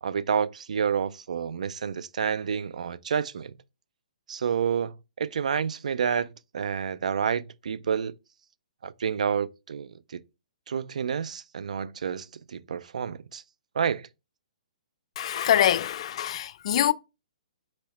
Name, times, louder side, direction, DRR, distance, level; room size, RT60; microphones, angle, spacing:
voice 1, 0.0-3.5 4.3-6.3 6.5-8.1 8.8-10.2 10.7-13.4 13.8-14.1, right 7 dB, 70° right, 0.3 m, -29 dB
voice 2, 15.2-16.9, left 10 dB, 50° left, 0.3 m, -24 dB
4.2 x 2.8 x 4.2 m
hypercardioid pair, 135°, 4 cm